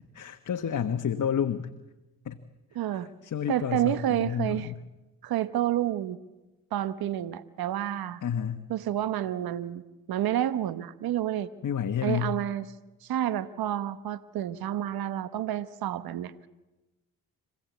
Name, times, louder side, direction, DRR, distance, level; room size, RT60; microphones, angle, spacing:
voice 1, 0.1-1.7 2.2-2.4 2.9-4.8 8.2-8.6 11.6-12.3, left 8 dB, 55° left, 7 dB, 1.3 m, -30 dB
voice 2, 2.7-3.1 3.5-4.7 5.2-6.2 6.7-8.2 8.7-9.8 10.1-11.5 12.0-12.7 13.0-16.3, right 11 dB, 75° right, 15 dB, 1.0 m, -29 dB
26.0 x 17.0 x 8.2 m, 1.0 s
supercardioid pair, 55°, 37 cm